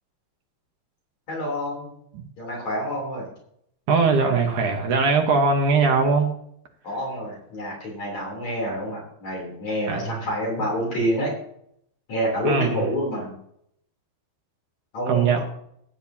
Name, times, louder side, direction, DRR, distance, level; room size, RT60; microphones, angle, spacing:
voice 1, 1.3-1.9 2.4-3.3 6.8-11.3 12.1-13.4 14.9-15.4, equal, 45° left, -3 dB, 4.4 m, -28 dB
voice 2, 3.9-6.3 9.9-10.2 12.4-12.8 15.1-15.4, right 4 dB, 65° right, 3 dB, 2.3 m, -20 dB
18.0 x 9.1 x 2.9 m, 0.71 s
omnidirectional pair, 4.7 m